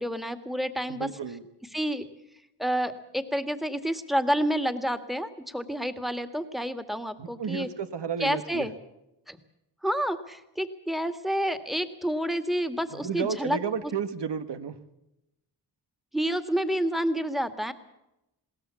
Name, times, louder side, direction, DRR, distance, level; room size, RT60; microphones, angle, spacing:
voice 1, 0.0-1.1 1.7-2.1 2.6-7.7 8.2-8.7 9.3-9.4 9.8-13.6 16.1-17.7, equal, ahead, 9 dB, 2.0 m, -29 dB
voice 2, 0.9-1.5 7.2-8.7 12.9-14.8, right 6 dB, 70° right, 11 dB, 1.6 m, -32 dB
21.5 x 17.5 x 7.1 m, 0.89 s
cardioid pair, 55°, 43 cm